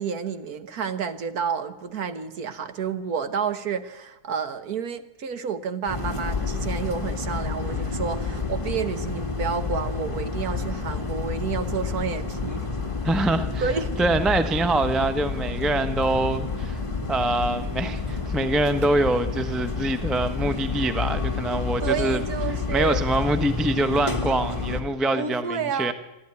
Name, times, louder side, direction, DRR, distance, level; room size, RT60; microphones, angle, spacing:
voice 1, 0.0-12.7 13.6-13.9 21.8-23.1 25.1-25.9, right 6 dB, 55° right, 11 dB, 1.4 m, -30 dB
sound 1, 5.9-24.8, left 4 dB, 15° left, 1.7 m, -29 dB
voice 2, 13.0-13.6 14.0-16.8 17.1-22.2 22.7-25.9, right 1 dB, ahead, 10 dB, 0.5 m, -24 dB
26.5 x 11.5 x 9.7 m, 0.98 s
omnidirectional pair, 2.1 m